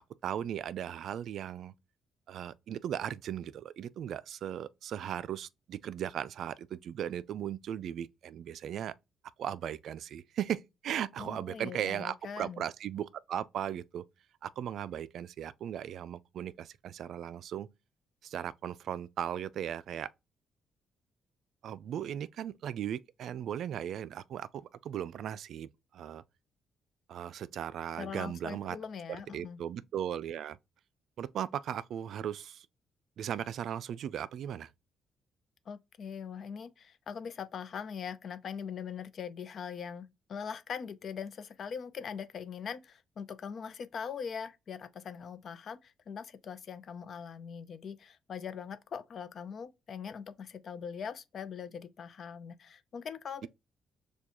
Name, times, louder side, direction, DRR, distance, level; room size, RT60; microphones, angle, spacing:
voice 1, 0.2-1.7 2.3-8.9 9.4-14.0 14.4-17.7 18.2-20.1 21.6-26.2 27.1-28.8 29.3-30.6 31.2-32.7 33.2-34.7, right 10 dB, 70° right, 0.3 m, -37 dB
voice 2, 11.2-12.6 28.0-29.6 35.7-53.5, left 7 dB, 55° left, 0.5 m, -41 dB
6.8 x 2.3 x 2.9 m
cardioid pair, 90°, 0 cm